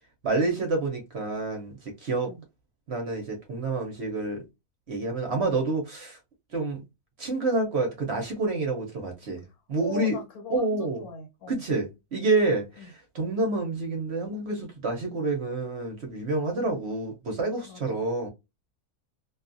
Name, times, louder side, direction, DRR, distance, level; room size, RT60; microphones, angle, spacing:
voice 1, 0.2-2.3 2.9-4.4 4.9-6.2 6.5-6.8 7.2-9.4 9.7-10.2 10.5-11.0 11.5-18.3, right 3 dB, 60° right, 0.8 m, -28 dB
voice 2, 9.8-11.6 12.8-12.9 16.5-16.7 17.6-18.0, left 6 dB, 75° left, 1.3 m, -39 dB
2.6 x 2.3 x 2.5 m
omnidirectional pair, 1.6 m